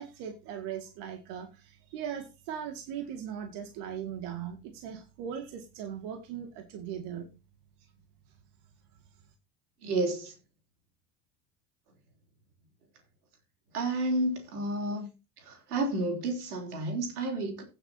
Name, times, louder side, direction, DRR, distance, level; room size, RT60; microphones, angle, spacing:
voice 1, 0.0-7.3, right 8 dB, 65° right, 2.2 m, -39 dB
voice 2, 9.8-10.3 13.7-15.1 15.4-17.6, right 2 dB, 85° right, 3.4 m, -31 dB
16.5 x 7.5 x 2.8 m
hypercardioid pair, 75°, 44 cm